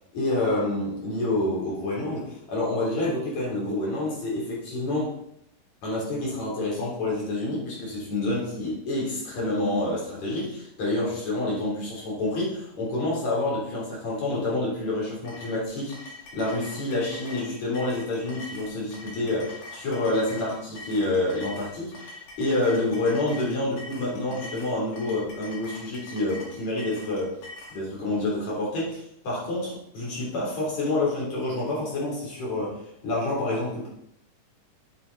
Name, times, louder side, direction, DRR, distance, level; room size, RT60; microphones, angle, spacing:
voice 1, 0.1-5.1 5.8-27.4 27.7-33.9, left 2 dB, 55° left, -5 dB, 4.8 m, -28 dB
sound 1, 15.3-27.8, left 2 dB, 70° left, 3.7 m, -43 dB
8.9 x 8.9 x 4.1 m, 0.78 s
omnidirectional pair, 3.8 m